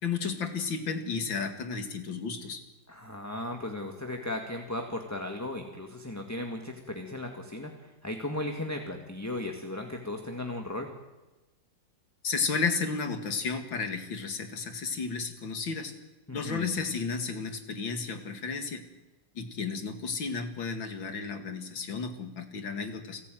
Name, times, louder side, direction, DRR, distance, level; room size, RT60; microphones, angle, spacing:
voice 1, 0.0-2.6 12.2-15.9 16.3-18.8 19.3-23.2, left 5 dB, 90° left, 7 dB, 2.9 m, -33 dB
voice 2, 2.9-10.9 16.3-16.7, left 1 dB, 10° left, 3 dB, 1.9 m, -36 dB
29.5 x 16.5 x 9.3 m, 1.1 s
omnidirectional pair, 2.0 m